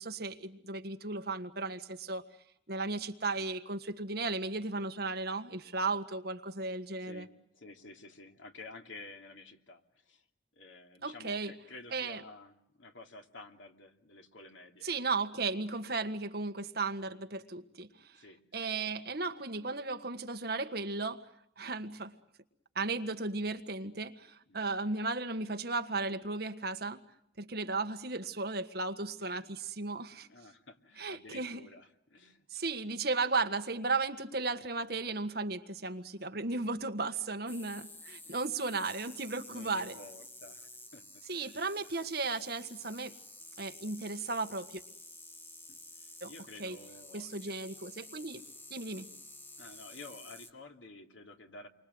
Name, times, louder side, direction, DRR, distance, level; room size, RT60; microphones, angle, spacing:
voice 1, 0.0-2.2 2.7-7.3 11.0-11.5 11.9-12.2 14.8-17.9 18.5-21.3 21.6-22.1 22.8-27.0 27.4-30.3 31.0-31.6 32.5-39.9 41.3-43.1 43.6-44.8 46.2-46.3 46.6-46.8 47.1-48.4 48.7-49.1, right 3 dB, 55° right, 7 dB, 1.7 m, -35 dB
voice 2, 7.0-10.2 10.6-14.9 18.1-18.7 24.5-24.7 30.2-32.4 38.3-38.4 38.7-38.8 39.5-41.0 41.4-41.7 45.7-47.6 49.6-51.7, left 3 dB, 85° left, 4 dB, 2.7 m, -52 dB
sound 1, 37.5-50.5, left 2 dB, 10° left, 1.5 m, -51 dB
30.0 x 24.5 x 8.0 m, 0.75 s
head